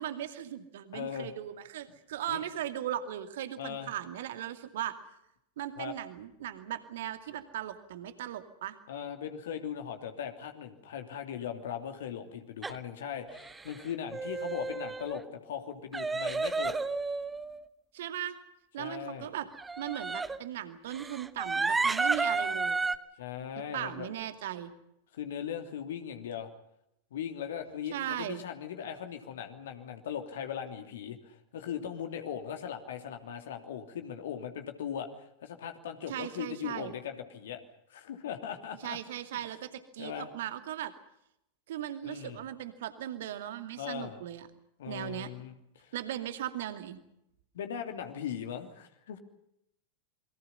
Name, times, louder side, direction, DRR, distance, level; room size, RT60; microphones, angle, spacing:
voice 1, 0.0-5.0 5.6-8.8 17.9-18.4 18.7-19.5 19.8-22.8 23.6-24.7 27.9-28.4 36.1-36.9 38.8-40.9 41.7-44.5 44.9-45.3 45.9-47.0, right 12 dB, 55° right, 9 dB, 2.5 m, -38 dB
voice 2, 0.9-1.3 2.3-2.4 3.6-3.9 5.8-5.9 8.9-16.7 18.8-19.3 23.2-24.1 25.1-26.5 27.1-37.6 37.9-39.0 39.3-39.4 40.0-40.3 42.0-42.4 43.8-44.2 44.8-45.9 47.5-49.2, left 8 dB, 60° left, 5 dB, 3.0 m, -39 dB
sound 1, 12.6-12.8 13.3-13.8 14.1-15.2 15.9-17.6 19.6-20.4 20.9-23.0, right 4 dB, 10° right, 1.1 m, -32 dB
28.5 x 23.0 x 5.6 m, 0.80 s
figure-of-eight pair, 90°, 0 cm